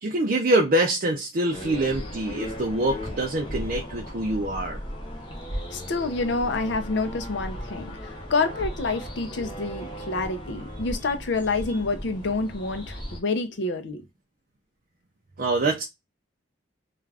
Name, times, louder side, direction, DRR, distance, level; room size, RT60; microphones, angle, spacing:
voice 1, 0.0-4.8 15.4-15.8, right 1 dB, 45° right, 0.4 m, -25 dB
sound 1, 1.5-13.2, equal, 25° left, 0.7 m, -36 dB
voice 2, 5.7-14.0, left 3 dB, 65° left, 0.5 m, -28 dB
2.4 x 2.3 x 3.3 m
head